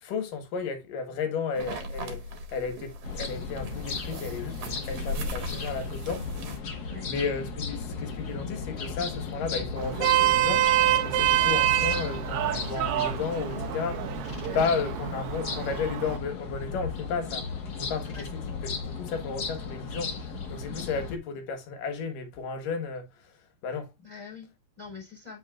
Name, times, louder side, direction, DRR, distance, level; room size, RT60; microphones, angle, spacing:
voice 1, 0.0-2.2 2.5-4.6 4.9-6.2 6.6-14.3 14.5-17.5 17.8-23.1 23.6-23.9, left 5 dB, 75° left, 3.0 m, -33 dB
sound 1, 1.5-6.6, equal, 50° right, 2.2 m, -37 dB
sound 2, 3.0-21.2, left 4 dB, 55° left, 1.0 m, -36 dB
Vehicle horn car horn honking, 9.8-16.2, right 13 dB, 80° right, 1.7 m, -26 dB
voice 2, 24.0-25.4, left 5 dB, 10° right, 3.0 m, -44 dB
8.5 x 5.4 x 2.4 m
omnidirectional pair, 3.9 m